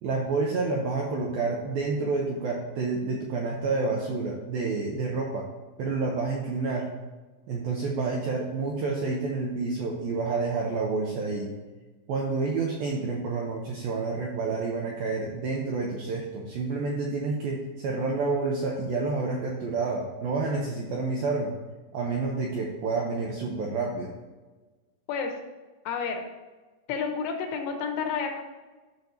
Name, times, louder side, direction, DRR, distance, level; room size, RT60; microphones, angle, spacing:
voice 1, 0.0-5.5 5.8-6.9 7.5-11.5 12.1-21.5 21.9-24.1, right 3 dB, 80° right, -1 dB, 2.1 m, -29 dB
voice 2, 25.9-26.2 26.9-28.4, left 6 dB, 80° left, 3 dB, 3.2 m, -30 dB
13.0 x 6.3 x 2.8 m, 1.2 s
omnidirectional pair, 5.3 m